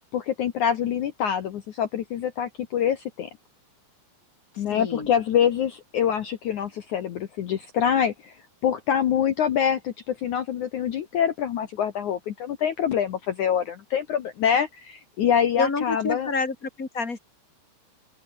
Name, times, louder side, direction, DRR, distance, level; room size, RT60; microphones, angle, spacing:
voice 1, 0.1-3.3 4.6-8.4 8.6-16.3, left 8 dB, 85° left, 1.7 m, -25 dB
voice 2, 4.7-5.1 15.6-17.2, left 4 dB, 20° left, 2.5 m, -28 dB
open air
omnidirectional pair, 5.6 m